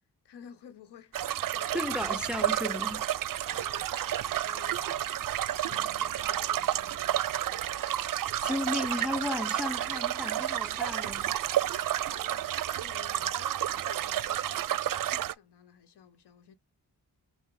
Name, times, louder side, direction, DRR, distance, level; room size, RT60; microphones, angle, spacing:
voice 1, 0.2-2.1 3.5-5.1 5.7-8.0 12.1-16.6, left 8 dB, 85° left, 1.0 m, -53 dB
sound 1, 1.1-15.3, right 12 dB, 55° right, 0.4 m, -31 dB
voice 2, 1.7-3.1 8.1-11.4, left 1 dB, ahead, 0.5 m, -34 dB
Drum, 5.7-8.4, left 7 dB, 45° left, 0.9 m, -58 dB
5.8 x 2.1 x 3.7 m
cardioid pair, 60°, 40 cm